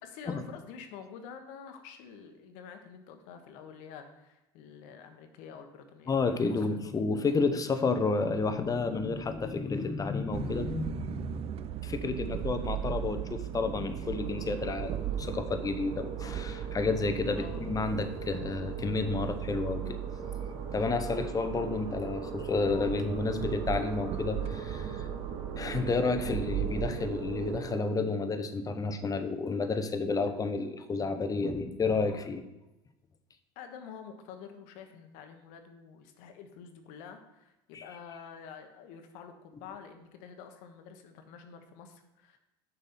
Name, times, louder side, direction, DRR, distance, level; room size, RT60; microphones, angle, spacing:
voice 1, 0.0-6.9 17.4-17.7 33.5-42.4, left 6 dB, 70° left, 6 dB, 1.1 m, -48 dB
voice 2, 6.1-11.4 11.8-20.0 20.7-25.1 25.6-32.4 37.7-37.8, left 4 dB, 25° left, 9 dB, 0.8 m, -31 dB
sound 1, 10.3-27.6, right 10 dB, 45° right, 0.4 m, -37 dB
sound 2, 14.0-27.9, right 5 dB, 80° right, 1.4 m, -42 dB
6.6 x 5.6 x 4.3 m, 0.95 s
hypercardioid pair, 80°, 14 cm